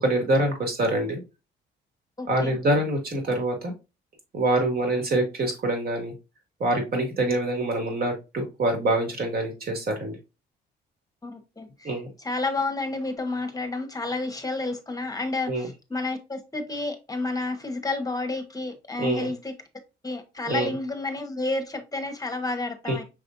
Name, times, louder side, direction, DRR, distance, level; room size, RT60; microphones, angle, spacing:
voice 1, 0.0-1.2 2.3-3.7 4.3-6.1 6.6-10.1 11.8-12.1 15.5-15.7 19.0-19.3 20.4-20.7 22.9-23.0, right 1 dB, 50° right, 3 dB, 2.1 m, -25 dB
voice 2, 2.2-2.6 7.3-7.4 11.2-11.9 12.2-19.5 20.0-23.0, left 2 dB, 20° left, 6 dB, 1.0 m, -30 dB
5.9 x 3.3 x 2.5 m, 0.27 s
cardioid pair, 90°, 20 cm